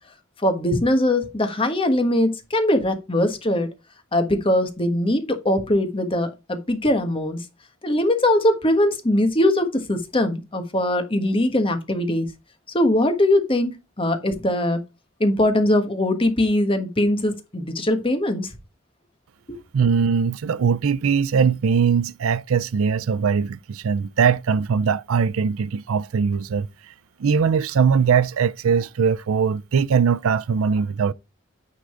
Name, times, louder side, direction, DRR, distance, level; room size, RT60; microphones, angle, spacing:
voice 1, 0.4-3.7 4.1-7.4 7.8-12.3 12.7-14.8 15.2-18.5 19.5-19.6, left 1 dB, 25° left, 1.3 m, -21 dB
voice 2, 19.7-26.7 27.2-31.1, right 6 dB, 85° right, 0.4 m, -21 dB
9.6 x 3.8 x 4.8 m
head